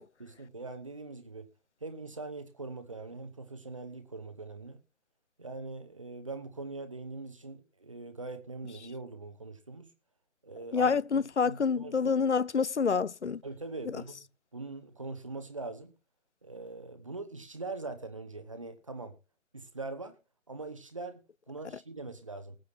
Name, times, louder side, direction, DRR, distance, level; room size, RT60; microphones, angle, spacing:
voice 1, 0.2-1.5 1.8-4.8 5.4-9.9 10.4-12.1 13.4-14.3 14.5-15.9 16.4-19.1 19.5-20.2 20.5-22.6, right 3 dB, 25° right, 0.9 m, -42 dB
voice 2, 10.7-13.4, left 5 dB, 60° left, 0.5 m, -27 dB
20.5 x 7.9 x 2.9 m
figure-of-eight pair, 160°, 40 cm